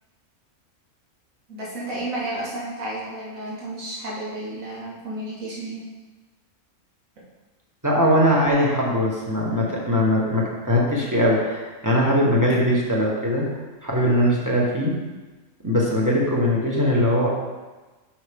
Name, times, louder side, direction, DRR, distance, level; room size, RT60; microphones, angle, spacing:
voice 1, 1.5-5.8, right 1 dB, 65° right, -6 dB, 2.2 m, -32 dB
voice 2, 7.8-13.5 13.8-14.9 15.6-17.3, equal, 15° right, -4 dB, 1.2 m, -20 dB
7.4 x 5.7 x 3.7 m, 1.2 s
omnidirectional pair, 1.5 m